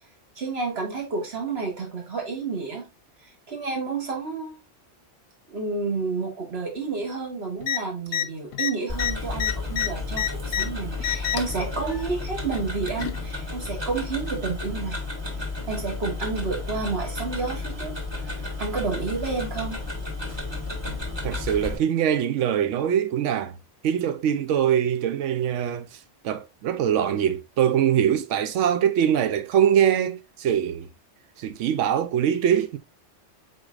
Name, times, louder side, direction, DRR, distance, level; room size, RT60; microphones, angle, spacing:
voice 1, 0.4-2.8 3.5-4.6 5.5-15.0 15.7-19.8, right 4 dB, 55° right, 1.6 m, -30 dB
sound 1, 7.6-7.8 8.1-8.3 8.5-10.7 11.0-11.6 12.5-13.2 14.3-14.4, left 10 dB, 65° left, 0.8 m, -27 dB
Tick-tock, 8.9-21.8, left 3 dB, 20° right, 1.4 m, -32 dB
voice 2, 21.2-23.5 23.8-25.9 26.2-30.9 31.4-32.8, right 9 dB, 85° right, 0.9 m, -23 dB
4.7 x 4.3 x 2.4 m
omnidirectional pair, 1.2 m